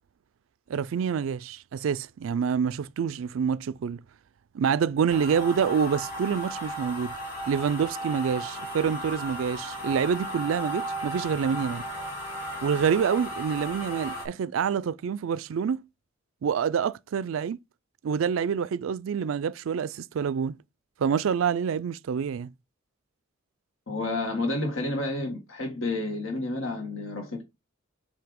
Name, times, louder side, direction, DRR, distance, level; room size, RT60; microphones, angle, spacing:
voice 1, 0.7-4.0 4.5-7.1 7.5-11.8 12.6-15.8 16.4-17.6 18.0-20.6 21.0-22.5, right 7 dB, 75° right, 0.4 m, -27 dB
sound 1, 5.1-14.3, right 1 dB, 50° left, 2.8 m, -35 dB
voice 2, 23.9-27.4, left 2 dB, 75° left, 1.7 m, -30 dB
7.8 x 2.8 x 5.2 m
head